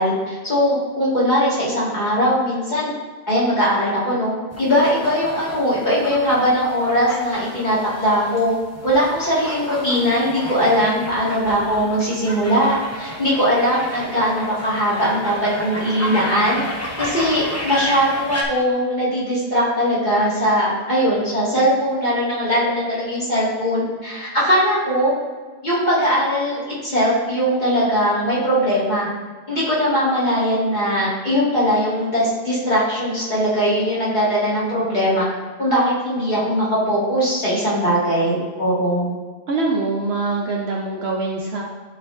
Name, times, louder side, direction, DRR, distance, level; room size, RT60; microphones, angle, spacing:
voice 1, 0.0-2.9 3.3-8.5 8.8-16.6 17.0-25.1 25.6-29.1 29.5-35.3 35.6-39.1, equal, 35° left, -8 dB, 2.2 m, -20 dB
sound 1, 4.5-18.4, equal, 15° left, 0.7 m, -32 dB
voice 2, 39.5-41.6, right 3 dB, 60° right, -1 dB, 0.9 m, -23 dB
11.0 x 4.3 x 2.6 m, 1.4 s
omnidirectional pair, 1.4 m